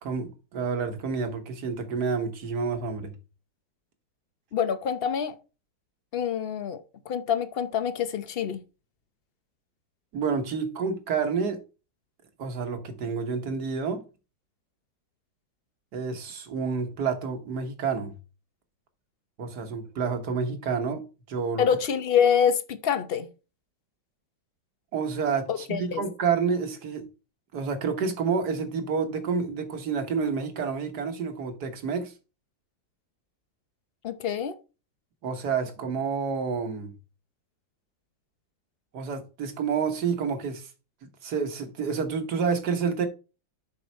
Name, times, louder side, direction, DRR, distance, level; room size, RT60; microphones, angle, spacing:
voice 1, 0.0-3.1 10.1-11.6 12.4-14.0 15.9-18.1 19.4-21.6 24.9-27.1 27.5-32.1 35.2-36.9 38.9-40.7 41.2-43.1, right 5 dB, 65° right, 1.8 m, -29 dB
voice 2, 4.5-5.4 6.1-8.6 21.6-23.3 25.5-26.0 34.0-34.5, left 8 dB, 55° left, 0.6 m, -26 dB
7.8 x 5.5 x 4.1 m
omnidirectional pair, 2.0 m